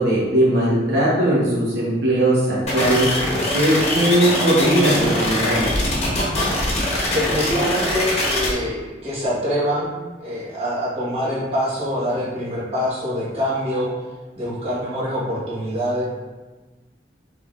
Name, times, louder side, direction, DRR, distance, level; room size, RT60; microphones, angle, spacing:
voice 1, 0.0-3.1 3.5-5.7, right 1 dB, 65° right, -7 dB, 1.0 m, -19 dB
sound 1, 2.7-8.5, left 1 dB, 35° left, 1.1 m, -22 dB
voice 2, 7.1-13.9 14.4-16.0, equal, 35° right, -9 dB, 1.3 m, -25 dB
5.2 x 3.4 x 2.5 m, 1.3 s
head